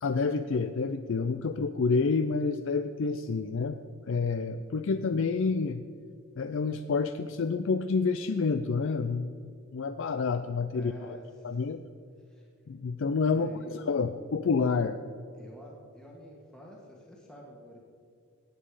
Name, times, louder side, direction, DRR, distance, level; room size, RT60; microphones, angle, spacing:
voice 1, 0.0-3.8 4.0-5.8 6.4-10.9 11.4-11.8 12.7-15.0, left 4 dB, 55° left, 10 dB, 0.4 m, -28 dB
voice 2, 10.7-11.6 12.3-12.5 13.3-14.2 15.3-17.8, equal, 5° left, -3 dB, 1.5 m, -49 dB
18.5 x 7.5 x 4.9 m, 2.4 s
head